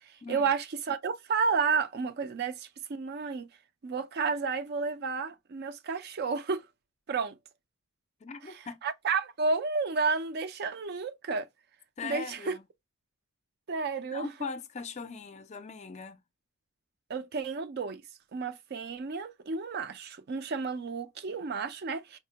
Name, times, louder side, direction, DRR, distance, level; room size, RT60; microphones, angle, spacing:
voice 1, 0.0-3.5 3.8-6.7 7.1-7.4 8.4-11.5 12.0-12.6 13.7-14.3 17.1-18.0 18.3-22.2, right 5 dB, 50° right, 0.4 m, -31 dB
voice 2, 8.2-8.8 12.0-12.6 14.1-16.2, left 4 dB, 35° left, 0.4 m, -40 dB
4.5 x 2.1 x 2.7 m
head